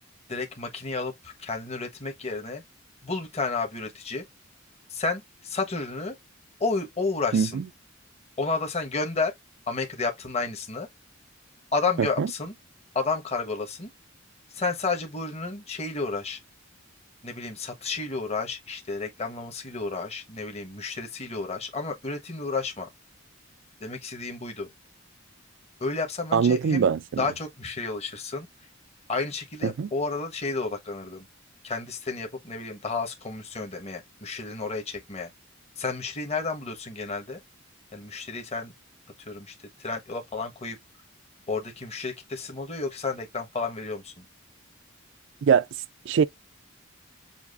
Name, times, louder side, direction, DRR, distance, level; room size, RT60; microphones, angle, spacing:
voice 1, 0.3-2.6 3.0-4.2 4.9-6.1 6.6-7.7 8.4-9.3 9.7-10.9 11.7-12.6 12.9-13.9 14.5-16.4 17.2-22.9 23.8-24.7 25.8-26.9 27.2-28.5 29.1-31.3 31.6-35.3 35.8-37.4 37.9-38.7 39.3-39.5 39.8-40.8 41.5-44.2, left 4 dB, 30° left, 1.2 m, -31 dB
voice 2, 7.3-7.6 12.2-12.3 26.3-27.2 29.6-29.9 45.4-45.7 46.1-46.2, right 6 dB, 65° right, 0.4 m, -22 dB
7.0 x 2.5 x 2.4 m
head